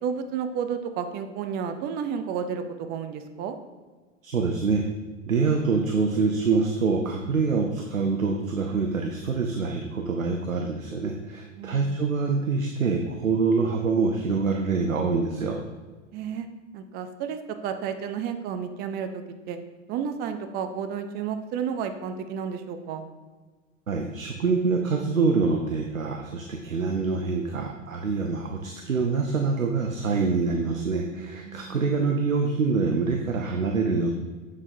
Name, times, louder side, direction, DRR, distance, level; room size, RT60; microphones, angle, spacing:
voice 1, 0.0-3.6 11.6-12.0 16.1-16.5 16.7-19.6 19.9-23.1 31.5-31.8, right 7 dB, 25° right, 8 dB, 0.5 m, -32 dB
voice 2, 4.2-4.8 5.3-15.6 23.9-34.1, right 4 dB, 85° right, 3 dB, 0.6 m, -25 dB
7.3 x 6.2 x 2.6 m, 1.4 s
figure-of-eight pair, 90°, 39 cm